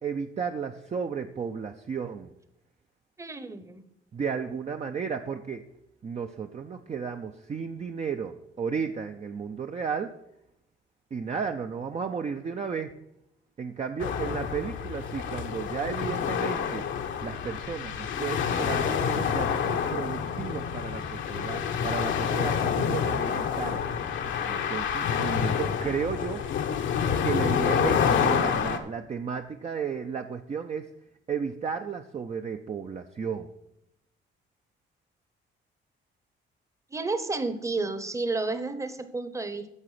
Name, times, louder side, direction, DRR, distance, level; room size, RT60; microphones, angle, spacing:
voice 1, 0.0-2.3 4.1-5.6 6.0-10.1 11.1-12.9 13.6-16.8 17.2-23.9 24.5-26.4 27.2-30.9 31.3-33.5, right 6 dB, 35° right, 5 dB, 0.5 m, -33 dB
voice 2, 3.2-3.8 36.9-39.7, right 3 dB, 15° right, 11 dB, 0.9 m, -31 dB
sound 1, 14.0-28.8, left 7 dB, 75° left, 1.0 m, -28 dB
9.8 x 6.9 x 4.9 m, 0.82 s
cardioid pair, 90°, 20 cm